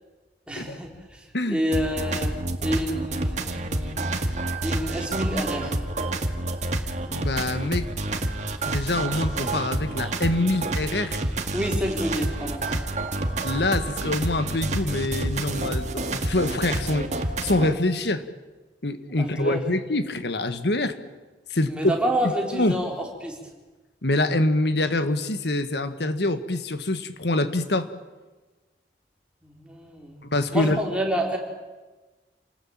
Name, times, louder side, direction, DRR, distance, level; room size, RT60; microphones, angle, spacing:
voice 1, 0.5-2.3 2.6-4.0 4.6-5.7 11.5-13.0 19.2-19.6 21.7-23.4 29.4-30.3 30.5-31.4, equal, 5° right, 0 dB, 4.1 m, -29 dB
sound 1, 1.7-17.7, right 2 dB, 40° right, 2.0 m, -28 dB
voice 2, 7.1-7.9 8.6-11.2 13.4-17.1 17.4-18.2 18.8-21.0 21.5-21.9 22.5-22.8 24.0-27.9 30.3-30.8, left 2 dB, 70° left, 11 dB, 1.6 m, -25 dB
28.0 x 19.0 x 8.9 m, 1.2 s
head